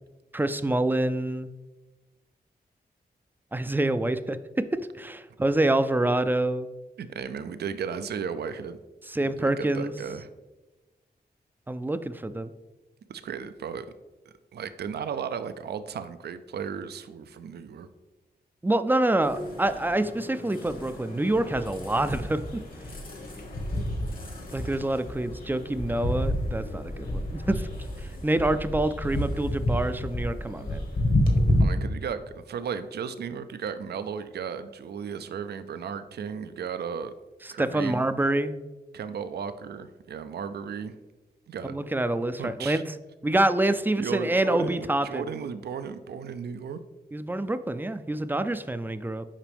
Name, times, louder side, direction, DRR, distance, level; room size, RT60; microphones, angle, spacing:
voice 1, 0.3-1.5 3.5-4.7 5.0-6.7 9.1-9.9 11.7-12.5 18.6-22.6 24.5-27.7 28.0-30.8 37.6-38.5 41.7-42.8 43.2-45.2 47.1-49.3, right 1 dB, 10° right, 12 dB, 0.3 m, -26 dB
voice 2, 7.0-8.8 9.4-10.3 13.1-13.9 14.5-17.9 31.6-37.1 37.5-38.0 38.9-40.9 41.5-41.7 42.4-42.8 44.0-46.8, right 7 dB, 75° right, 11 dB, 0.4 m, -35 dB
sound 1, 19.2-31.6, left 1 dB, 55° left, 1.3 m, -30 dB
7.4 x 5.1 x 3.4 m, 1.1 s
wide cardioid pair, 90°, 17 cm